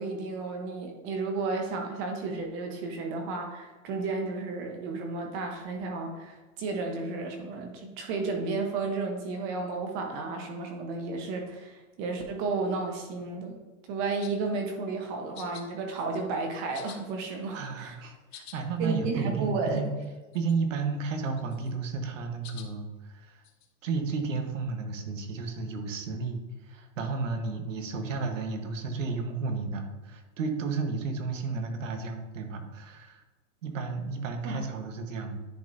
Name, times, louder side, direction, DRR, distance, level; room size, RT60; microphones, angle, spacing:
voice 1, 0.0-13.6 13.9-17.9 18.8-19.8 34.4-34.7, right 3 dB, 35° right, 3 dB, 1.1 m, -32 dB
sound 1, 14.2-14.5 15.4-15.7 16.0-16.4 16.7-17.7 18.1-18.6 18.9-19.0 19.2-19.3 19.7-20.1 20.3-20.8 21.3-21.9 22.4-22.7 23.4-23.7, left 9 dB, 55° left, 1.0 m, -49 dB
voice 2, 17.5-19.9 20.3-23.4 23.8-33.2 33.6-35.5, right 4 dB, 80° right, 5 dB, 1.4 m, -33 dB
10.0 x 5.4 x 2.7 m, 1.2 s
hypercardioid pair, 145°, 38 cm